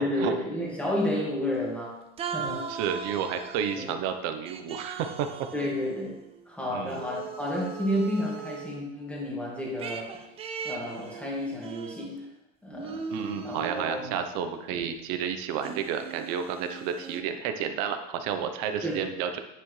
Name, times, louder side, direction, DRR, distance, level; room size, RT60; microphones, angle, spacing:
voice 1, 0.0-2.7 3.8-3.9 5.5-6.2 6.5-10.1 10.6-12.3 12.6-13.0 13.4-14.2 14.7-14.8 18.8-19.0, left 1 dB, 5° left, -3 dB, 1.9 m, -31 dB
sound 1, 1.5-1.9 2.2-3.9 4.5-6.4 6.9-8.8 9.8-12.4 12.8-14.3 14.8-14.9 15.6-17.2, right 6 dB, 15° right, 0.4 m, -39 dB
voice 2, 2.7-5.3 6.7-7.0 13.1-19.4, right 8 dB, 55° right, 7 dB, 0.9 m, -31 dB
9.0 x 7.4 x 3.2 m, 0.92 s
supercardioid pair, 150°, 36 cm